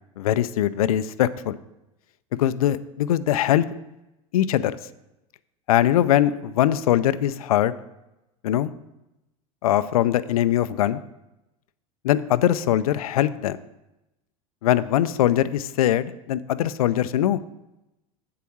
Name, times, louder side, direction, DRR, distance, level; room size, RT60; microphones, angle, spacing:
voice 1, 0.2-1.6 2.4-3.7 4.3-4.8 5.7-7.7 8.4-8.7 9.6-11.0 12.0-13.6 14.6-17.4, left 12 dB, 85° left, 13 dB, 0.4 m, -21 dB
7.5 x 4.7 x 7.1 m, 0.92 s
hypercardioid pair, 85°, 18 cm